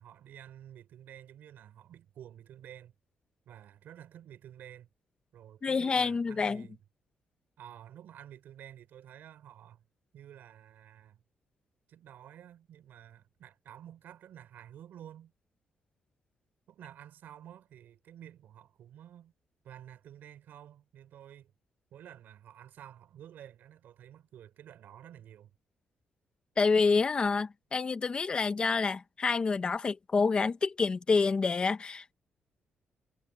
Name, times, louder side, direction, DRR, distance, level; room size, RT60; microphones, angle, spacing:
voice 1, 0.0-2.9 3.5-4.9 5.3-6.8 7.6-9.8 10.1-11.2 11.9-15.3 16.7-19.3 19.6-21.5 21.9-25.5, right 10 dB, 75° right, 4.0 m, -51 dB
voice 2, 5.6-6.7 26.6-32.1, left 4 dB, 30° left, 1.2 m, -28 dB
cardioid pair, 150°, 3 cm